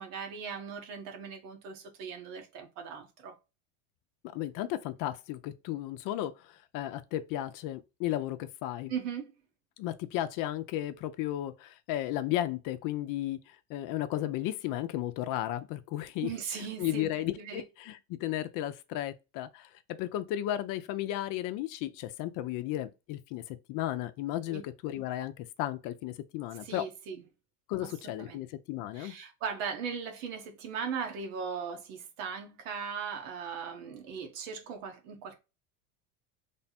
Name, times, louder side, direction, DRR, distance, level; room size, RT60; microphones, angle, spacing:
voice 1, 0.0-3.4 8.9-9.3 16.2-17.6 24.5-24.6 26.6-27.2 27.8-28.4 28.9-35.4, right 6 dB, 80° right, 1.2 m, -38 dB
voice 2, 4.3-8.9 9.8-16.3 16.6-26.8 27.7-29.1, left 13 dB, 55° left, 0.6 m, -34 dB
3.4 x 2.2 x 4.1 m
supercardioid pair, 110°, 39 cm